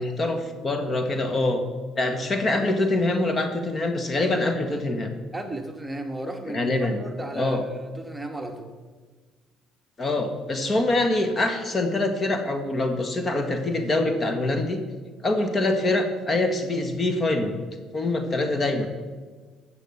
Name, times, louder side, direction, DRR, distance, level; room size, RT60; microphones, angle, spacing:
voice 1, 0.0-1.6 2.0-5.1 6.5-7.0 7.4-7.6 10.0-14.8 15.2-17.6 17.9-18.9, left 2 dB, 35° left, 7 dB, 1.7 m, -24 dB
voice 2, 5.3-8.7, right 1 dB, 10° right, 5 dB, 1.4 m, -35 dB
13.5 x 7.2 x 6.6 m, 1.4 s
hypercardioid pair, 55°, 0 cm